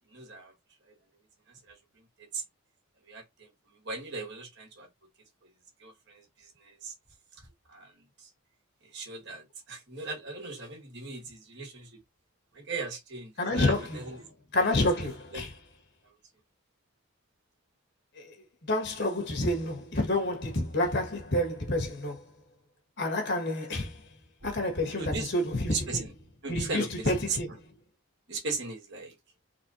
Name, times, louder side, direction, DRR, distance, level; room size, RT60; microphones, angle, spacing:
voice 1, 0.1-0.5 1.7-1.8 2.2-2.4 3.1-3.5 3.9-4.9 5.8-6.2 6.6-6.9 7.7-8.3 8.9-12.0 12.5-14.2 15.3-15.5 24.9-25.3 25.7-26.1 26.4-27.4 28.3-29.1, right 4 dB, 50° right, 2.0 m, -38 dB
voice 2, 13.4-14.0 14.5-15.5 18.2-18.3 18.7-22.3 23.0-24.0 24.4-26.0 26.5-27.5, left 1 dB, 50° left, 1.9 m, -29 dB
4.3 x 4.1 x 2.8 m
head